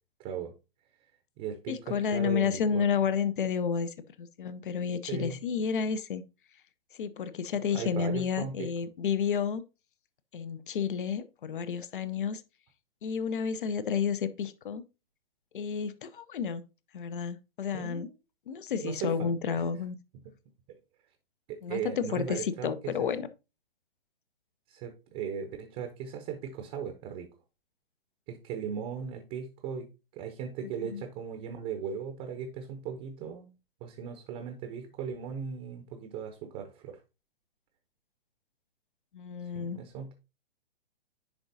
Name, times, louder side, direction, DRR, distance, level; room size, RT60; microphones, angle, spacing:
voice 1, 0.2-0.5 1.4-2.9 5.1-5.4 7.7-8.7 17.7-18.1 18.8-19.6 21.5-23.1 24.7-27.3 28.3-29.9 30.1-33.5 33.8-37.0 39.5-40.1, right 7 dB, 25° right, 0.8 m, -38 dB
voice 2, 1.7-6.2 7.0-9.6 10.3-12.4 13.0-14.8 15.5-16.6 16.9-18.1 18.5-20.0 21.6-23.3 30.6-31.0 39.1-39.8, left 7 dB, 60° left, 0.8 m, -31 dB
10.5 x 3.8 x 2.7 m
figure-of-eight pair, 125°, 29 cm